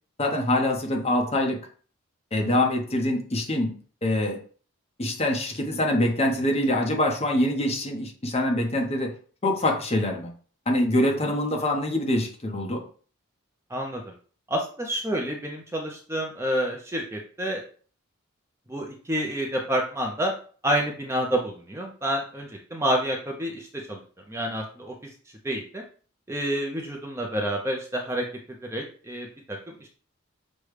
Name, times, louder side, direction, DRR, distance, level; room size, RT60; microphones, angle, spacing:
voice 1, 0.2-1.6 2.3-3.7 4.0-4.4 5.0-9.1 9.4-10.3 10.7-12.9, left 1 dB, 30° left, 2 dB, 0.8 m, -24 dB
voice 2, 13.7-14.1 14.5-17.6 18.7-20.3 20.6-24.0 24.3-24.9 25.4-25.8 26.3-28.2 28.7-29.9, right 1 dB, 10° right, 0 dB, 0.5 m, -28 dB
6.2 x 2.2 x 3.3 m, 0.41 s
head